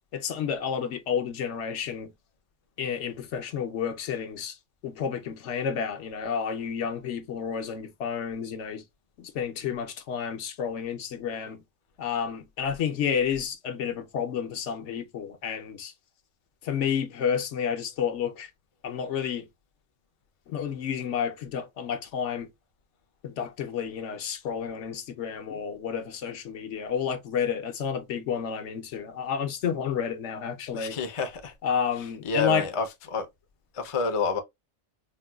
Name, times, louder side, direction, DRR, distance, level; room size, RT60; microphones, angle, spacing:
voice 1, 0.1-2.1 2.8-4.6 4.8-8.8 9.2-11.6 12.0-15.9 16.6-18.5 18.8-19.5 20.5-22.5 23.2-31.0 31.6-32.7, left 7 dB, 70° left, 1.0 m, -30 dB
voice 2, 30.7-31.5 32.2-32.9 33.1-33.3 33.8-34.4, left 4 dB, 35° left, 0.5 m, -28 dB
4.3 x 2.2 x 2.2 m
omnidirectional pair, 1.3 m